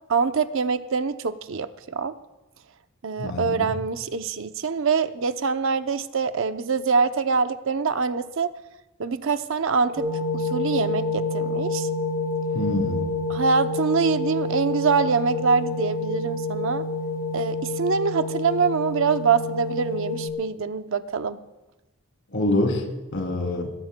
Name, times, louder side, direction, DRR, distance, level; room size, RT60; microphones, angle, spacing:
voice 1, 0.1-2.1 3.0-8.5 9.0-10.1 10.3-11.9 13.3-16.8 17.3-21.4, right 5 dB, 70° right, 10 dB, 0.6 m, -24 dB
voice 2, 3.2-3.7 12.5-13.1 22.3-22.8 23.1-23.7, left 1 dB, 65° left, 2 dB, 3.0 m, -25 dB
sound 1, 10.0-20.3, left 2 dB, 10° right, 4.7 m, -28 dB
25.0 x 18.0 x 2.2 m, 1.1 s
head